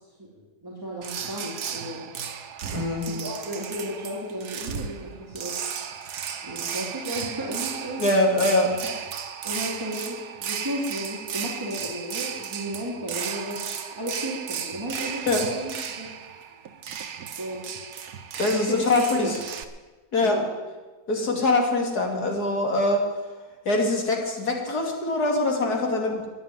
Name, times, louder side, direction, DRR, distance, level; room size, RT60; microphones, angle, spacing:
voice 1, 0.2-2.1 3.0-5.6 6.5-8.4 8.8-8.9 9.4-13.6 13.9-15.7 16.0-16.1 17.4-17.6 18.5-18.8 19.2-19.4 20.2-20.5 21.2-21.4, equal, 15° right, -4 dB, 2.6 m, -34 dB
sound 1, 1.0-19.6, right 7 dB, 85° right, 1.6 m, -34 dB
voice 2, 2.7-3.0 8.0-8.7 15.3-15.4 18.4-19.4 20.1-20.4 21.1-23.0 23.6-26.2, left 2 dB, 75° left, 1 dB, 3.2 m, -23 dB
13.0 x 10.0 x 9.5 m, 1.3 s
omnidirectional pair, 1.7 m